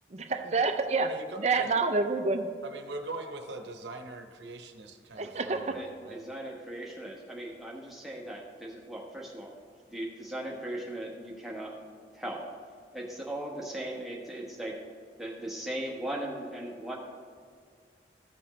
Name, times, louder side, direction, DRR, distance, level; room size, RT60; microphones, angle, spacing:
voice 1, 0.3-1.1 1.4-2.5 5.2-5.8, right 4 dB, 35° right, 7 dB, 0.5 m, -27 dB
voice 2, 1.0-1.8 2.6-6.2, right 2 dB, 75° right, 5 dB, 0.9 m, -42 dB
voice 3, 5.7-9.5 9.9-11.8 12.1-12.5 12.9-14.8 15.2-17.0, right 1 dB, ahead, -3 dB, 1.2 m, -38 dB
15.0 x 5.9 x 3.2 m, 2.1 s
head